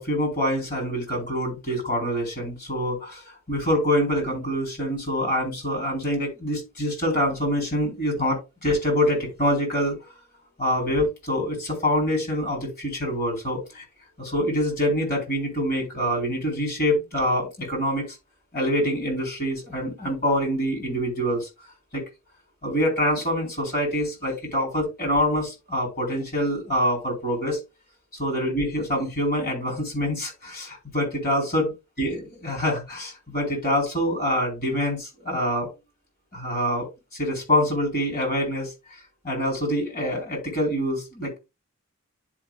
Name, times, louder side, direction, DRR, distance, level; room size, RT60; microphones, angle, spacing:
voice 1, 0.0-10.0 10.6-13.8 14.2-18.1 18.5-21.5 21.9-22.0 22.6-27.6 28.2-31.7 32.0-35.7 36.3-41.4, equal, 45° left, 0 dB, 4.2 m, -25 dB
10.5 x 5.0 x 2.3 m, 0.25 s
head